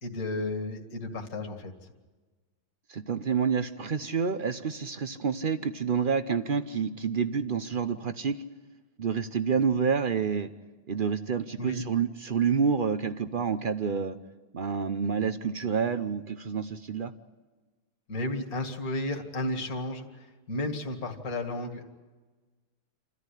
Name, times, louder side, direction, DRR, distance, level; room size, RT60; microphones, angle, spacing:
voice 1, 0.0-1.7 11.6-11.8 18.1-21.8, left 1 dB, 45° left, 4 dB, 2.6 m, -33 dB
voice 2, 2.9-8.4 9.0-10.5 10.9-14.1 14.5-17.1, right 6 dB, 70° right, 11 dB, 0.5 m, -28 dB
28.5 x 14.0 x 9.9 m, 1.3 s
omnidirectional pair, 2.1 m